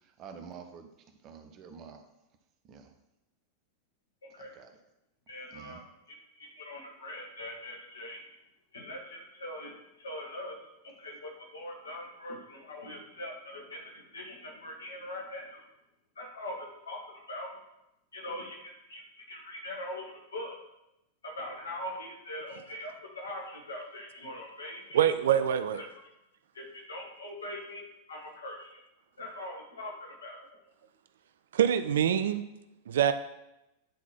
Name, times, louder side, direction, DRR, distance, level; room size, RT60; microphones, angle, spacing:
voice 1, 0.2-0.9 1.2-2.0 2.7-2.9 4.6-4.7 5.5-5.8, right 6 dB, 35° right, 6 dB, 0.9 m, -47 dB
voice 2, 4.2-4.6 5.3-8.2 8.7-15.7 16.2-17.5 18.1-20.6 21.2-25.0 25.7-25.9 26.5-28.8 29.2-30.4, left 1 dB, 70° left, 0 dB, 1.7 m, -42 dB
voice 3, 24.9-25.8 31.5-32.4 32.9-33.1, right 9 dB, 60° right, 11 dB, 0.4 m, -25 dB
9.2 x 4.0 x 4.4 m, 0.90 s
figure-of-eight pair, 90°, 0 cm